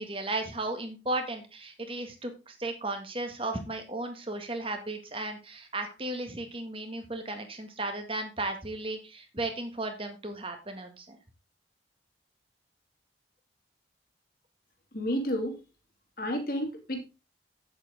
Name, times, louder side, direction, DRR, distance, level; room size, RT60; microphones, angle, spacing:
voice 1, 0.0-11.2, right 2 dB, 30° right, 5 dB, 1.8 m, -35 dB
voice 2, 14.9-15.6 16.2-17.0, equal, 55° left, 4 dB, 2.5 m, -30 dB
8.9 x 7.9 x 3.8 m, 0.29 s
head